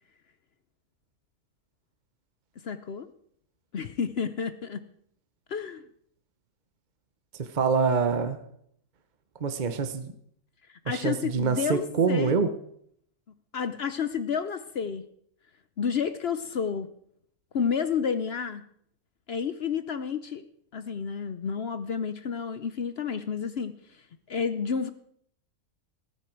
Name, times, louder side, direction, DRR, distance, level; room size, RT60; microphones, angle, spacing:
voice 1, 2.6-3.1 3.7-4.8 5.5-5.8 10.7-12.3 13.5-15.1 15.8-16.9 17.5-18.6 19.3-20.4 20.7-23.7 24.3-24.9, left 6 dB, 55° left, 11 dB, 0.8 m, -30 dB
voice 2, 7.3-8.4 9.4-10.1 10.9-12.5, right 5 dB, 35° right, 9 dB, 0.9 m, -25 dB
15.0 x 14.0 x 4.6 m, 0.67 s
omnidirectional pair, 1.6 m